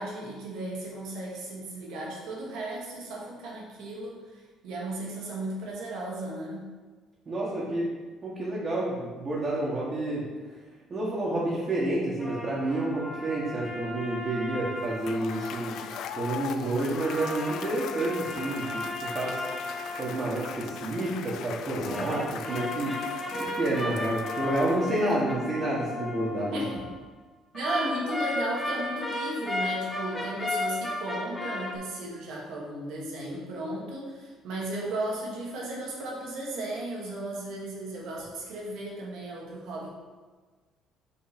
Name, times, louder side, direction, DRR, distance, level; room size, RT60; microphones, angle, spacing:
voice 1, 0.0-6.7 26.5-26.8 27.5-39.9, right 1 dB, 75° right, -3 dB, 1.7 m, -35 dB
voice 2, 7.2-7.9 8.2-10.2 10.9-15.7 16.2-19.5 20.0-22.9 23.3-26.5, right 2 dB, 35° right, -7 dB, 1.5 m, -29 dB
sound 1, 12.2-16.3 16.9-21.3 21.8-26.9 27.6-31.8, left 2 dB, 10° left, 0.9 m, -35 dB
Cheering / Applause / Crowd, 14.8-25.3, left 8 dB, 65° left, 0.3 m, -40 dB
5.7 x 3.7 x 5.2 m, 1.4 s
cardioid pair, 105°, 0 cm